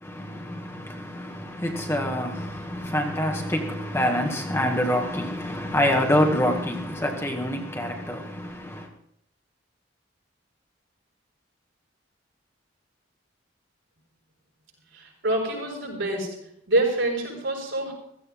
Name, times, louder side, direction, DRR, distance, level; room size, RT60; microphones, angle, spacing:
voice 1, 0.0-8.9, left 1 dB, 15° left, 1.9 m, -26 dB
voice 2, 14.9-16.4 16.7-17.9, right 1 dB, 80° right, 6.5 m, -26 dB
16.0 x 14.5 x 3.8 m
head